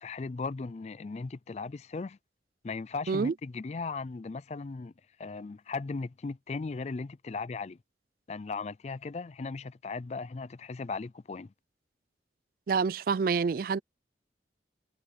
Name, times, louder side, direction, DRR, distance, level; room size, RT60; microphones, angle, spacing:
voice 1, 0.0-2.2 2.6-4.9 5.2-7.8 8.3-11.5, left 4 dB, 40° left, 0.4 m, -37 dB
voice 2, 12.7-13.8, right 5 dB, 55° right, 0.4 m, -27 dB
head